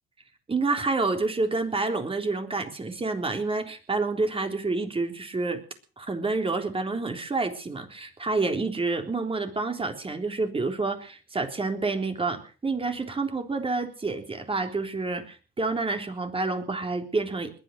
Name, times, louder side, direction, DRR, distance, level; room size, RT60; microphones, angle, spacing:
voice 1, 0.5-5.6 6.0-17.5, right 3 dB, 30° right, 5 dB, 3.7 m, -28 dB
21.0 x 10.0 x 6.6 m, 0.39 s
cardioid pair, 90°, 20 cm